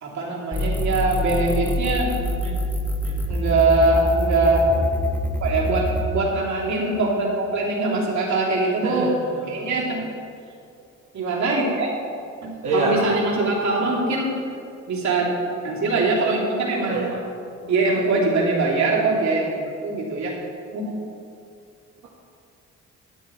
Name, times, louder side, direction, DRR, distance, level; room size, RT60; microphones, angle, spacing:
voice 1, 0.0-2.1 3.3-4.7 5.4-9.1 9.5-10.1 11.1-11.9 12.4-14.4 14.9-15.3 15.6-17.1 17.6-19.5 19.8-20.4 20.7-20.8, right 3 dB, 70° right, -4 dB, 2.9 m, -22 dB
sound 1, 0.5-6.1, left 1 dB, 5° left, 0.7 m, -25 dB
voice 2, 8.8-10.0 12.6-13.1 13.8-14.0 16.9-17.2 17.8-18.0, right 2 dB, 85° right, -4 dB, 1.5 m, -29 dB
13.0 x 9.0 x 4.2 m, 2.5 s
cardioid pair, 90°, 30 cm